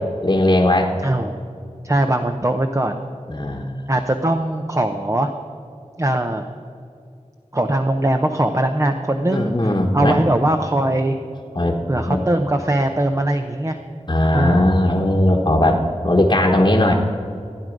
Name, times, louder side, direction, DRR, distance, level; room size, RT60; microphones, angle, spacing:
voice 1, 0.2-0.9 3.3-3.9 9.3-10.2 11.5-11.8 12.1-12.2 14.1-16.9, left 1 dB, 35° left, -1 dB, 1.2 m, -18 dB
voice 2, 1.0-1.4 1.8-3.0 3.9-5.3 6.0-6.5 7.5-11.2 11.9-13.8 14.3-14.7, right 1 dB, 25° right, 6 dB, 0.7 m, -20 dB
15.5 x 9.1 x 5.2 m, 2.5 s
wide cardioid pair, 45°, 13 cm